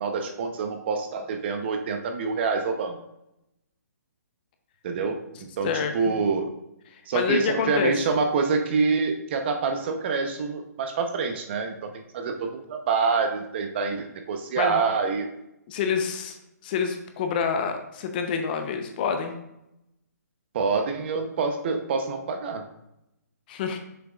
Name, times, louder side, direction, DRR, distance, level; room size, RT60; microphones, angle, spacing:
voice 1, 0.0-3.0 4.8-5.2 5.6-6.5 7.1-15.3 20.5-22.7, right 4 dB, 40° right, 6 dB, 0.8 m, -26 dB
voice 2, 5.6-6.2 7.1-7.9 14.6-14.8 15.7-16.4 16.6-19.3 23.5-23.8, left 6 dB, 30° left, 6 dB, 0.7 m, -27 dB
6.8 x 6.0 x 2.4 m, 0.85 s
hypercardioid pair, 150°, 9 cm